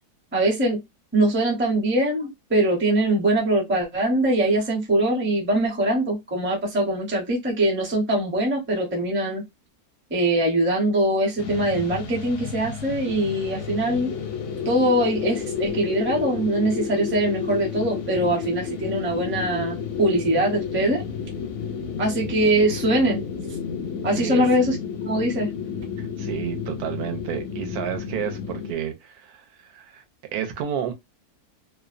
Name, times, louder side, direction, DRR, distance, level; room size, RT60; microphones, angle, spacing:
voice 1, 0.3-0.8 1.1-9.4 10.1-14.1 14.6-21.0 22.0-23.2 24.0-24.8 25.0-25.5, right 1 dB, 15° right, 0.4 m, -22 dB
sound 1, 11.4-28.7, left 7 dB, 70° left, 0.7 m, -31 dB
voice 2, 24.2-24.5 26.0-30.0 30.3-30.9, right 9 dB, 80° right, 1.1 m, -31 dB
2.7 x 2.0 x 2.4 m
omnidirectional pair, 1.6 m